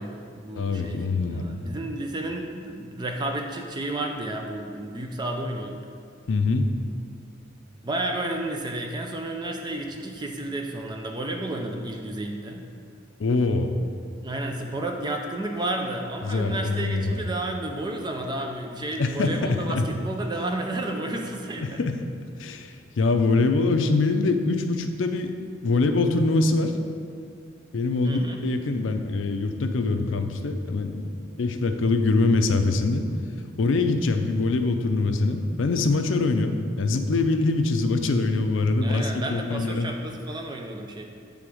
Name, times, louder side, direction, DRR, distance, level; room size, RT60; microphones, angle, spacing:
voice 1, 0.0-1.0 1.3-5.9 7.8-12.7 14.2-21.8 28.0-28.4 38.8-41.0, right 1 dB, 25° right, 2 dB, 0.5 m, -31 dB
voice 2, 0.6-1.5 6.3-6.7 13.2-13.7 16.2-17.2 19.0-19.9 21.6-22.0 22.4-25.3 25.6-26.7 27.7-31.0 31.4-33.1 33.6-39.9, left 3 dB, 90° left, 7 dB, 0.5 m, -24 dB
7.7 x 3.5 x 4.9 m, 2.3 s
head